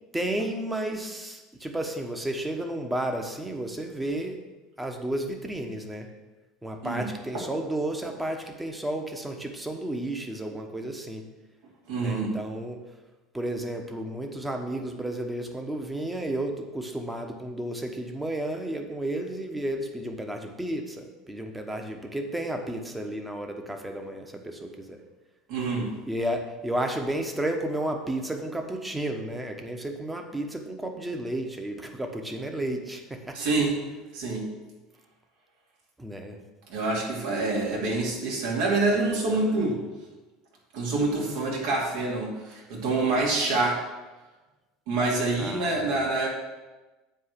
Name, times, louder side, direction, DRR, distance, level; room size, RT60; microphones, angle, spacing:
voice 1, 0.1-4.4 4.8-6.1 6.6-11.3 12.0-12.8 13.3-25.0 26.1-33.5 36.0-36.4 45.4-46.0, right 1 dB, 10° right, 4 dB, 1.2 m, -32 dB
voice 2, 11.9-12.4 25.5-26.0 33.3-33.7 34.1-34.5 36.7-39.8 40.7-43.8 44.9-46.3, right 3 dB, 65° right, -2 dB, 2.5 m, -26 dB
7.9 x 4.8 x 6.7 m, 1.2 s
hypercardioid pair, 75°, 0 cm